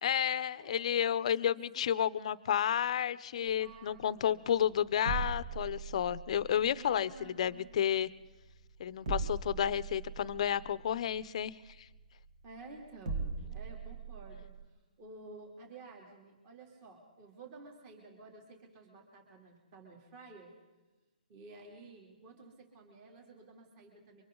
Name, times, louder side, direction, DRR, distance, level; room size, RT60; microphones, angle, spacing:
voice 1, 0.0-8.1 8.8-11.6, left 9 dB, 45° left, 17 dB, 0.7 m, -31 dB
voice 2, 0.5-0.9 1.4-1.8 3.3-4.4 6.7-7.7 12.4-14.6 15.0-20.5 21.3-24.2, right 3 dB, 25° right, 1 dB, 3.1 m, -52 dB
sound 1, 3.5-14.6, right 4 dB, 60° right, 2.8 m, -41 dB
28.0 x 24.5 x 3.9 m, 1.1 s
hypercardioid pair, 160°, 5 cm